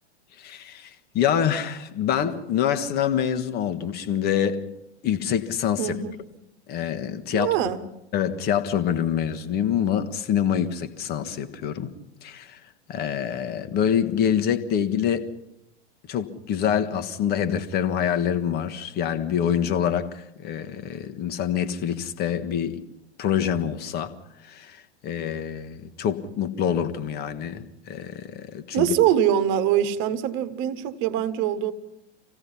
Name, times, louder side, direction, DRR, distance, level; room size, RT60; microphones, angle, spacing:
voice 1, 0.3-4.6 5.0-6.0 6.7-7.5 8.1-11.9 12.2-12.6 12.9-15.3 16.1-22.8 23.2-24.1 24.4-28.9, left 9 dB, 30° left, 1.5 m, -26 dB
voice 2, 5.8-6.2 7.3-7.8 28.7-31.7, right 10 dB, 35° right, 1.5 m, -23 dB
26.5 x 17.0 x 5.7 m
figure-of-eight pair, 100°, 35 cm